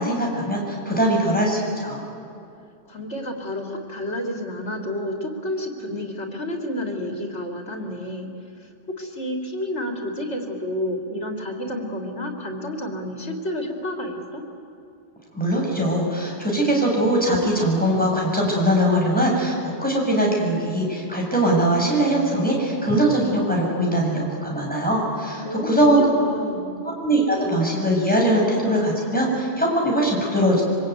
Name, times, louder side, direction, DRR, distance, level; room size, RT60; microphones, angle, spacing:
voice 1, 0.0-2.0 15.3-26.0 27.0-30.6, right 1 dB, 10° left, -2 dB, 6.8 m, -21 dB
voice 2, 2.9-8.3 8.6-8.7 9.0-14.4 25.4-26.7, left 1 dB, 85° left, 2 dB, 3.5 m, -30 dB
25.5 x 25.0 x 9.4 m, 2.7 s
omnidirectional pair, 1.1 m